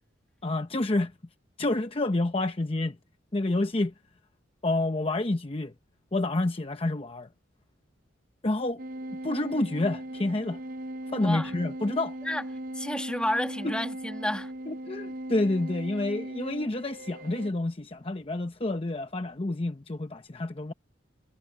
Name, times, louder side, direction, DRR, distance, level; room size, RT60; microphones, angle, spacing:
voice 1, 0.4-1.1 1.6-3.0 3.3-3.9 4.6-5.7 6.1-7.3 8.4-8.8 9.2-10.6 11.1-12.2 13.6-13.7 14.7-20.7, left 2 dB, 30° left, 0.8 m, -28 dB
sound 1, 8.8-17.5, right 1 dB, 45° right, 0.8 m, -38 dB
voice 2, 11.2-11.5 12.2-12.4 12.7-14.5, left 1 dB, 5° left, 1.7 m, -30 dB
head